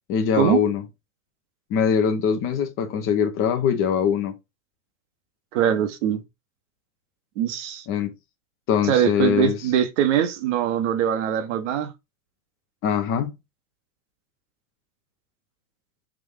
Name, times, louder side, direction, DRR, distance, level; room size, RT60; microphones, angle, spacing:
voice 1, 0.1-0.8 1.7-4.3 7.9-8.1 8.7-9.6 12.8-13.3, left 7 dB, 30° left, 0.7 m, -22 dB
voice 2, 5.5-6.2 7.4-7.9 8.8-11.9, right 9 dB, 55° right, 0.9 m, -22 dB
3.7 x 2.5 x 3.6 m
hypercardioid pair, 105°, 44 cm